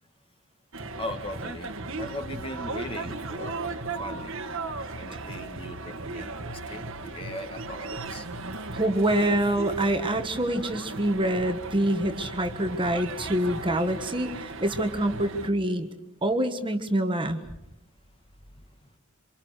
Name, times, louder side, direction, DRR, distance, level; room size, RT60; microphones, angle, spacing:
sound 1, 0.7-15.5, right 3 dB, 65° right, 1.6 m, -36 dB
voice 1, 1.0-1.7 2.0-4.6 4.9-8.3 18.6-18.7, left 1 dB, 25° left, 6 dB, 2.1 m, -39 dB
voice 2, 8.7-15.9 16.2-17.4, right 1 dB, 25° right, 7 dB, 1.4 m, -26 dB
28.0 x 26.0 x 6.5 m, 0.86 s
head